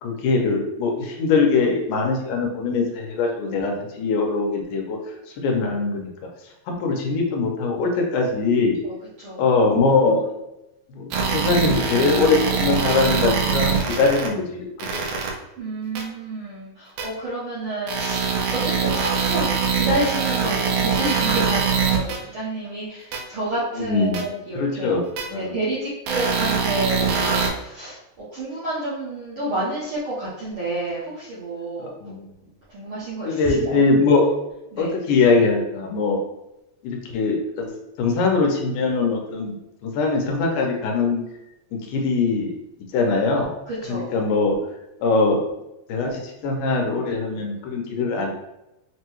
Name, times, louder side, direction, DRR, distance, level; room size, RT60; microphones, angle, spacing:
voice 1, 0.0-5.0 5.4-6.1 6.7-8.8 9.4-10.2 10.9-14.7 14.9-15.2 23.7-24.2 24.6-25.0 25.3-25.6 31.8-32.3 33.3-34.3 34.8-36.2 36.8-37.7 38.0-39.6 39.8-41.2 41.7-42.5 42.9-43.5 43.9-44.6 45.0-45.4 45.9-48.3, left 4 dB, 80° left, 1 dB, 2.1 m, -22 dB
voice 2, 8.8-9.4 15.6-19.5 19.7-24.9 25.3-28.0 28.3-31.9 32.7-33.8 34.7-34.9 43.7-44.1, right 1 dB, 65° right, -10 dB, 1.3 m, -29 dB
sound 1, 11.1-14.3 14.8-15.3 16.0-16.1 17.0-17.1 17.9-22.2 23.1-23.2 24.1-24.2 25.2-25.3 26.1-27.5, right 6 dB, 90° right, 2.3 m, -23 dB
5.9 x 2.2 x 3.0 m, 0.91 s
omnidirectional pair, 3.7 m